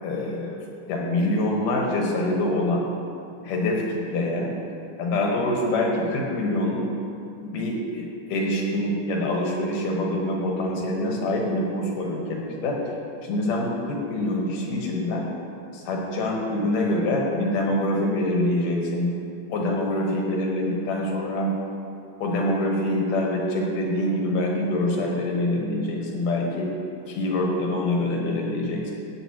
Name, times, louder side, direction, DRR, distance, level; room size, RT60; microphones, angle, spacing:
voice 1, 0.0-0.6 0.9-2.9 3.4-4.5 5.0-6.8 7.5-12.8 13.2-15.2 15.7-19.1 19.5-21.5 22.2-26.7 27.1-28.9, left 1 dB, 85° left, -1 dB, 3.1 m, -25 dB
15.0 x 9.4 x 3.0 m, 2.6 s
omnidirectional pair, 3.6 m